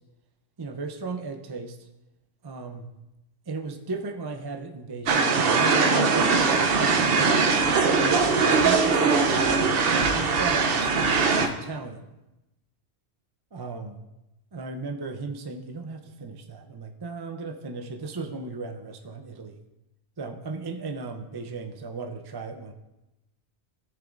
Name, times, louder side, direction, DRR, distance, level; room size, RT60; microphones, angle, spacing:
voice 1, 0.6-1.8 2.4-2.9 3.5-7.5 7.8-12.1 13.5-14.0 14.5-19.6 20.2-22.7, right 3 dB, 30° right, 5 dB, 0.4 m, -36 dB
sound 1, 5.1-11.5, right 4 dB, 65° right, 0.9 m, -21 dB
15.0 x 6.9 x 2.5 m, 0.95 s
omnidirectional pair, 1.1 m